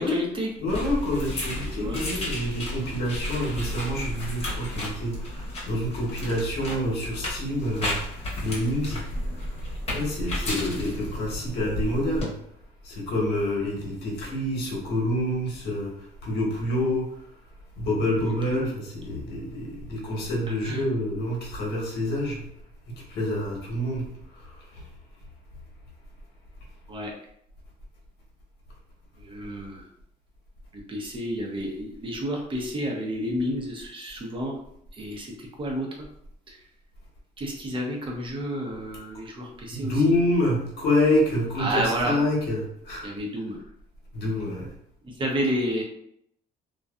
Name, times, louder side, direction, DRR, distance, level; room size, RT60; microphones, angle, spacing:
voice 1, 0.0-0.5 1.5-2.0 18.2-18.6 20.5-20.8 26.9-27.1 29.2-29.9 30.7-34.6 35.0-36.1 36.5-36.6 37.4-40.1 41.6-42.2 43.0-43.6 45.0-45.8, equal, 30° right, 0 dB, 0.7 m, -30 dB
voice 2, 0.6-5.4 5.7-9.0 9.9-12.3 12.8-15.9 16.2-17.1 17.8-22.4 22.9-24.1 39.7-43.1 44.1-44.7, left 1 dB, 70° left, -3 dB, 1.0 m, -27 dB
sound 1, 0.7-12.2, left 1 dB, 35° left, 0.9 m, -33 dB
2.6 x 2.2 x 2.3 m, 0.73 s
cardioid pair, 110°, 17 cm